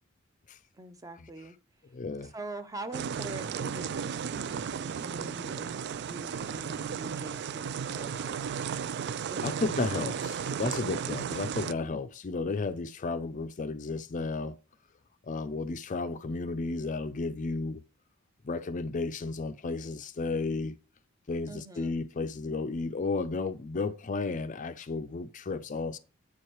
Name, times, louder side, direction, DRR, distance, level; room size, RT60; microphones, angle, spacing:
voice 1, 0.8-1.6 2.2-5.7 6.0-8.3 9.3-9.7 21.5-22.0, right 2 dB, 15° right, 0.7 m, -44 dB
voice 2, 1.9-2.3 9.4-14.6 15.2-17.8 18.4-20.8 21.3-26.0, left 3 dB, 40° left, 0.4 m, -33 dB
sound 1, 2.9-11.7, right 7 dB, 55° right, 0.3 m, -34 dB
8.6 x 4.7 x 4.5 m
head